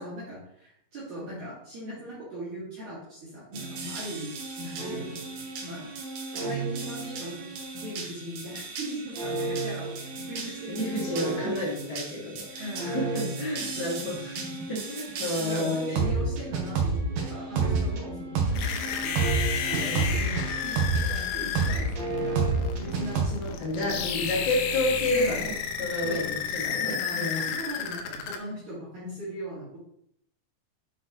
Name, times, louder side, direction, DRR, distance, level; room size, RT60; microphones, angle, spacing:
voice 1, 0.0-5.2 5.6-5.9 6.3-7.5 7.7-10.8 12.6-13.3 13.8-14.1 15.4-19.1 19.7-22.4 22.7-23.6 23.9-24.0 25.1-25.4 26.0-26.2 26.7-29.8, equal, 45° right, -10 dB, 3.2 m, -39 dB
sound 1, 3.5-21.2 21.5-23.2, right 4 dB, 85° right, 1.9 m, -31 dB
voice 2, 10.7-16.0 19.8-20.2 23.6-25.5 25.8-27.4, left 1 dB, 50° left, -5 dB, 1.2 m, -30 dB
sound 2, 18.6-28.4, left 7 dB, 85° left, 3.3 m, -32 dB
8.4 x 5.8 x 3.2 m, 0.73 s
omnidirectional pair, 6.0 m